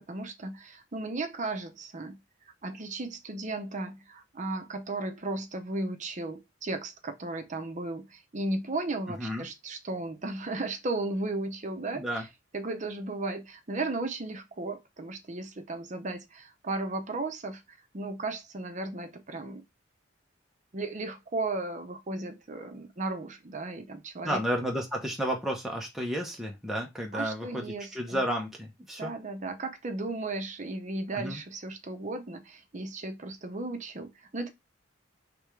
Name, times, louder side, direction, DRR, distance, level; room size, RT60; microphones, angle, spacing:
voice 1, 0.0-2.2 2.6-12.3 12.5-19.6 20.7-24.4 27.1-28.2 29.0-34.5, right 2 dB, 40° right, 0.7 m, -35 dB
voice 2, 11.9-12.2 24.2-29.1 31.1-31.4, equal, ahead, 0.8 m, -32 dB
3.4 x 3.3 x 4.7 m
head